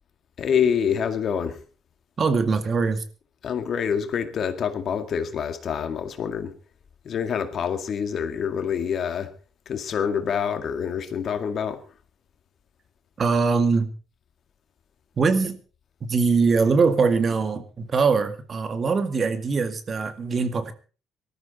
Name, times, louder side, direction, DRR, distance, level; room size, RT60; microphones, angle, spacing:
voice 1, 0.4-1.6 3.4-6.5 7.0-9.3 9.7-11.8, left 7 dB, 60° left, 2.0 m, -26 dB
voice 2, 2.2-3.0 13.2-13.9 15.2-15.6 16.0-20.7, right 4 dB, 45° right, 2.1 m, -22 dB
19.0 x 13.5 x 4.2 m
hypercardioid pair, 55°, 0 cm